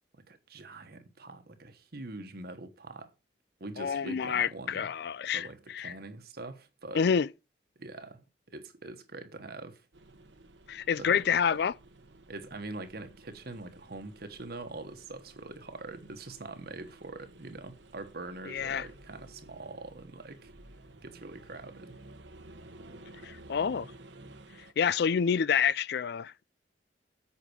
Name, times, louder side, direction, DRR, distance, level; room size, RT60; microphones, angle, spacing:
voice 1, 0.3-3.1 3.6-4.9 5.3-7.1 7.8-9.9 10.9-11.1 11.5-11.6 12.3-22.0, right 2 dB, 60° right, 1.3 m, -44 dB
voice 2, 3.8-5.9 6.9-7.3 10.7-11.7 18.5-18.9 23.2-23.9 24.8-26.4, left 7 dB, 60° left, 0.4 m, -28 dB
sound 1, 9.9-24.7, right 2 dB, 80° right, 1.2 m, -53 dB
8.4 x 5.8 x 6.3 m
head